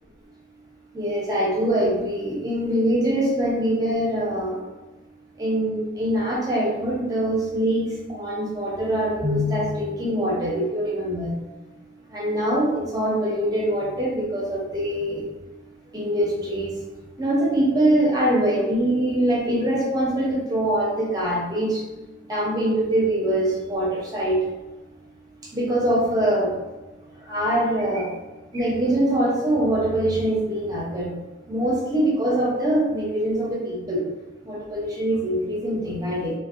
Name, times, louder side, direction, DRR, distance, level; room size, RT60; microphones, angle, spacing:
voice 1, 0.9-4.6 5.4-11.3 12.1-15.2 15.9-16.7 17.2-21.8 22.3-24.4 25.5-26.5 27.3-28.1 28.5-31.1 31.5-34.0 34.4-36.3, right 1 dB, 20° right, -5 dB, 0.6 m, -23 dB
2.6 x 2.1 x 2.4 m, 1.1 s
head